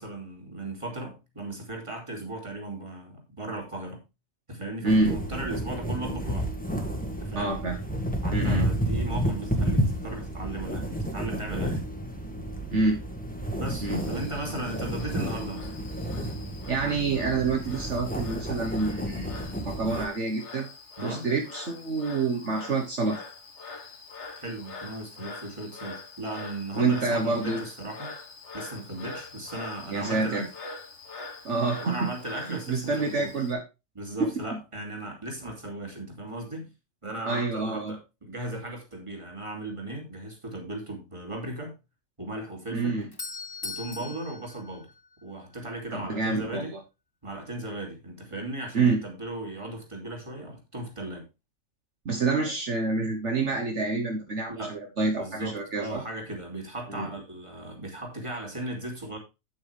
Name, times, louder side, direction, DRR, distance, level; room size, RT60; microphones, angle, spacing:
voice 1, 0.0-4.0 4.5-6.5 7.2-7.6 8.2-11.8 13.6-15.7 21.0-21.3 24.3-28.1 28.5-30.5 31.8-33.3 34.0-36.7 37.0-41.8 42.2-43.0 43.6-44.9 45.2-46.8 47.2-51.2 54.5-54.8 55.1-59.2, right 1 dB, 20° right, 2.8 m, -37 dB
voice 2, 4.8-5.2 7.3-7.8 8.3-8.7 12.7-13.0 13.8-14.0 16.7-20.7 21.0-23.2 26.7-27.6 29.9-30.5 31.4-32.1 32.5-33.6 34.2-34.6 37.2-38.0 42.7-43.1 45.9-46.8 48.7-49.0 52.0-56.0 56.9-57.1, right 3 dB, 60° right, 1.6 m, -27 dB
sound 1, 4.9-20.1, right 1 dB, 5° left, 1.7 m, -31 dB
Frog, 13.7-33.5, left 3 dB, 60° left, 1.7 m, -44 dB
Doorbell, 42.7-45.6, left 4 dB, 20° left, 0.7 m, -40 dB
8.8 x 8.6 x 3.4 m
omnidirectional pair, 1.4 m